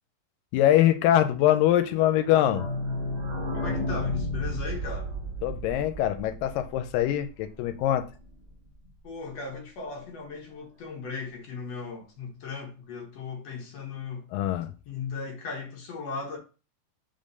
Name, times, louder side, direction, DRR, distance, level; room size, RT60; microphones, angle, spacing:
voice 1, 0.5-2.6 5.4-8.1 14.3-14.7, left 12 dB, 90° left, 2.3 m, -23 dB
sound 1, 1.9-7.5 7.8-7.9 8.0-8.1 8.4-8.5, left 1 dB, 45° right, 0.7 m, -33 dB
voice 2, 3.5-5.1 9.0-14.3 14.9-16.4, left 4 dB, 60° left, 2.0 m, -37 dB
5.1 x 3.7 x 5.3 m
omnidirectional pair, 3.9 m